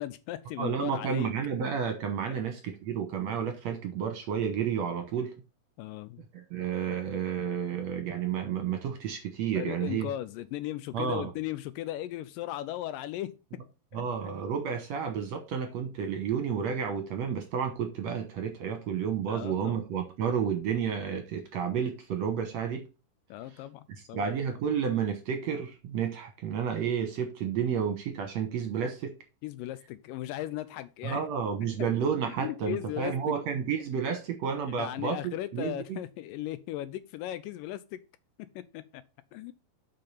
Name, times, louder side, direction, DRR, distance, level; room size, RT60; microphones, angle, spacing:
voice 1, 0.0-1.3 2.3-2.4 5.8-6.2 9.6-13.3 13.9-14.0 19.3-19.8 23.3-24.3 29.4-31.2 32.3-33.4 34.7-38.0 38.4-39.0 39.3-39.5, left 14 dB, 80° left, 2.1 m, -37 dB
voice 2, 0.6-5.3 6.3-10.1 10.9-11.3 13.9-22.8 24.1-29.1 31.0-36.0, right 7 dB, 65° right, 1.9 m, -31 dB
7.7 x 5.1 x 5.5 m
omnidirectional pair, 4.1 m